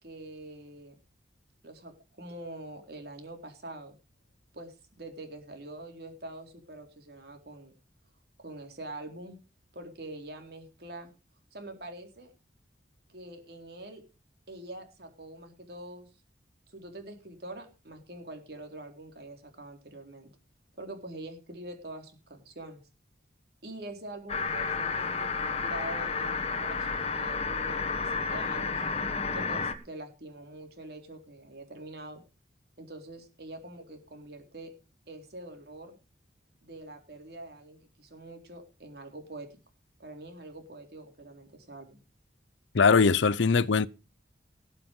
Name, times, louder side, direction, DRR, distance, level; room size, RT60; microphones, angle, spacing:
voice 1, 0.0-1.0 1.6-4.0 4.5-7.7 8.4-9.4 9.7-11.1 11.5-12.3 13.1-14.0 14.5-16.1 16.7-20.3 20.8-22.8 23.6-28.8 29.3-32.2 32.8-34.7 35.1-36.0 36.6-39.5 40.0-42.0, right 1 dB, 55° right, 4.0 m, -44 dB
sound 1, 24.3-29.7, left 4 dB, 35° left, 1.4 m, -31 dB
voice 2, 42.7-43.9, left 5 dB, 85° left, 0.6 m, -21 dB
19.0 x 7.5 x 5.3 m
head